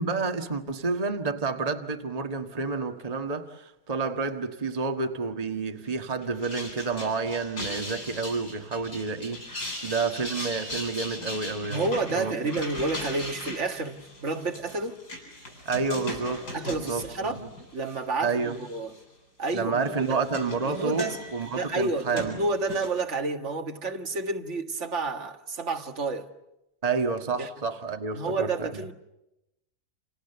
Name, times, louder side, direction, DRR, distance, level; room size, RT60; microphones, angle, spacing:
voice 1, 0.0-12.3 15.6-17.5 18.2-18.6 19.5-22.4 26.8-28.7, right 4 dB, 25° right, 1.6 m, -30 dB
sound 1, 6.2-18.0 18.4-19.0 19.8-23.0, left 1 dB, 80° left, 8.6 m, -39 dB
voice 2, 11.7-15.0 16.5-17.4 17.7-19.0 19.4-20.2 20.6-21.2 21.5-26.3 27.4-27.5 28.1-28.9, right 3 dB, 45° right, 2.0 m, -30 dB
29.5 x 28.5 x 6.9 m
omnidirectional pair, 1.7 m